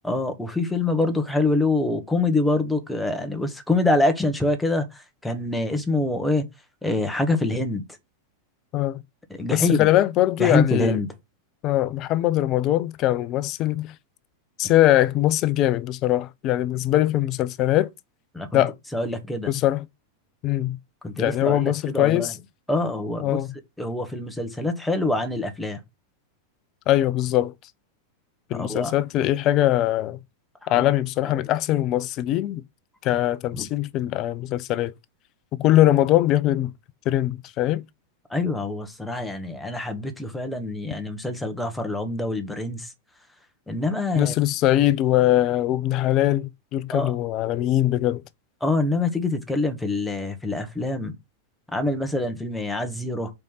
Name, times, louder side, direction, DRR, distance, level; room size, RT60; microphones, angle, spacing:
voice 1, 0.0-6.4 6.8-7.8 9.4-9.9 10.4-11.1 18.3-18.6 18.9-19.5 21.0-22.3 22.7-23.4 23.8-25.8 28.5-28.9 30.7-30.8 31.2-31.4 33.5-33.6 38.3-42.9 43.7-44.3 46.9-47.1 48.6-51.1 51.7-53.3, left 2 dB, 5° left, 1.6 m, -25 dB
voice 2, 9.5-11.0 11.6-13.9 14.6-17.9 18.5-18.7 19.5-19.8 20.4-20.8 21.2-22.3 23.2-23.5 26.9-27.5 28.5-30.2 30.7-32.6 33.0-34.9 35.6-36.7 37.1-37.8 44.1-48.2, left 14 dB, 35° left, 0.6 m, -21 dB
5.3 x 4.8 x 5.6 m
figure-of-eight pair, 90°, 0 cm